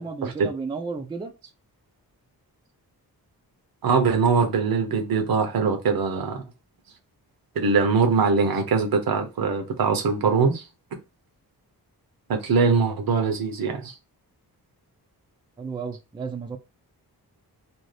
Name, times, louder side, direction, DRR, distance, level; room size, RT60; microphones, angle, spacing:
voice 1, 0.0-1.3 15.6-16.6, right 4 dB, 15° right, 0.3 m, -33 dB
voice 2, 3.8-6.4 7.6-10.7 12.3-13.9, right 5 dB, 65° right, 0.7 m, -22 dB
2.6 x 2.4 x 3.2 m
wide cardioid pair, 125°, 38 cm